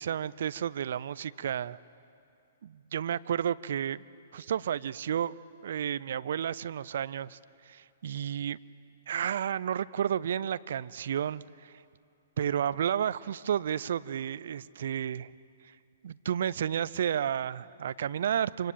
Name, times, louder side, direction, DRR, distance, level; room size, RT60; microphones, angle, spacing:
voice 1, 0.0-1.8 2.6-4.0 4.3-5.3 5.6-7.4 7.7-8.6 9.1-11.7 12.4-15.3 16.0-18.7, right 9 dB, 60° right, 18 dB, 0.6 m, -31 dB
25.5 x 25.5 x 8.7 m, 2.6 s
figure-of-eight pair, 120°, 0 cm